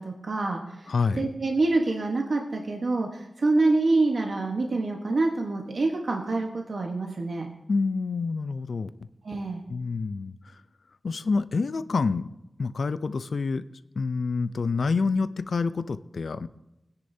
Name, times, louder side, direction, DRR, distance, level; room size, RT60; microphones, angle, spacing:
voice 1, 0.0-7.5 9.2-9.6, right 2 dB, 70° right, 1 dB, 1.1 m, -26 dB
voice 2, 0.9-1.3 7.7-8.9 9.7-10.6 11.0-12.3 12.6-13.6 14.0-16.5, left 4 dB, 80° left, 13 dB, 0.4 m, -27 dB
20.0 x 9.8 x 2.7 m, 0.92 s
wide cardioid pair, 90°, 0 cm